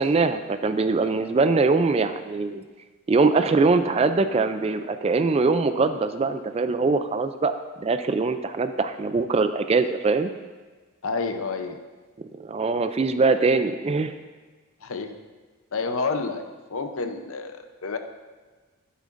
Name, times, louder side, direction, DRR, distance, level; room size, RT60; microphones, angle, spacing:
voice 1, 0.0-2.6 3.1-10.3 12.2-14.1, right 3 dB, 25° right, 10 dB, 0.3 m, -22 dB
voice 2, 11.0-11.8 14.8-15.2 15.7-16.4 16.7-18.0, left 4 dB, 65° left, 7 dB, 0.7 m, -29 dB
13.0 x 8.4 x 2.6 m, 1.3 s
head